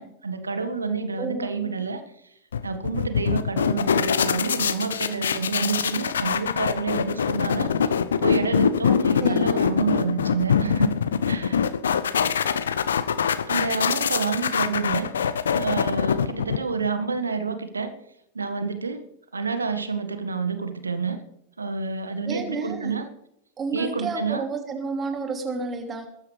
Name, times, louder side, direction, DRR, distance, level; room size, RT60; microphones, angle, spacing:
voice 1, 0.0-2.0 2.6-10.9 11.3-11.7 13.5-15.1 15.5-17.9 18.3-19.0 19.3-21.2 21.6-23.1 23.7-24.4, right 4 dB, 75° right, 9 dB, 1.6 m, -28 dB
voice 2, 1.2-1.8 8.9-9.6 22.2-22.9 23.6-26.1, right 4 dB, 20° right, 4 dB, 2.8 m, -31 dB
sound 1, 2.5-16.9, left 7 dB, 65° left, 0.7 m, -24 dB
21.5 x 12.5 x 3.4 m, 0.79 s
figure-of-eight pair, 90°, 0 cm